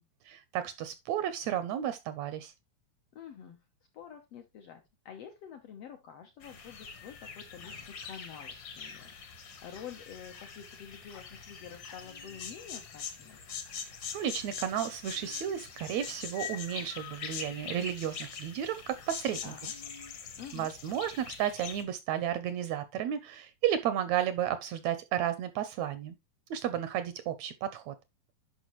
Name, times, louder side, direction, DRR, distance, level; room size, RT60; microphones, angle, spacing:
voice 1, 0.2-2.5 14.1-19.5 20.5-26.2 26.5-27.9, right 10 dB, 80° right, 1.6 m, -33 dB
voice 2, 3.1-3.6 3.9-13.4 19.4-19.7 20.4-20.7, left 8 dB, 80° left, 1.4 m, -48 dB
sound 1, 6.4-21.8, left 6 dB, 55° left, 1.3 m, -43 dB
10.5 x 5.6 x 3.0 m
omnidirectional pair, 4.0 m